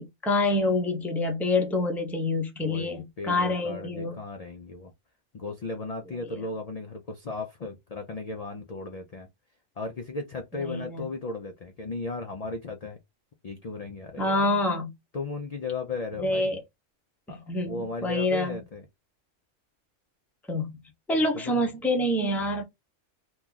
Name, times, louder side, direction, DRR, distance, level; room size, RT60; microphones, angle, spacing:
voice 1, 0.0-4.2 10.6-11.0 14.2-14.9 16.2-16.6 17.3-18.6 20.5-20.7 21.1-22.6, left 2 dB, ahead, 0.4 m, -27 dB
voice 2, 2.6-4.9 5.3-9.3 9.8-13.0 13.4-14.6 15.1-16.6 17.3-18.8 21.3-21.7, left 3 dB, 60° left, 0.4 m, -36 dB
2.9 x 2.3 x 3.7 m
omnidirectional pair, 1.3 m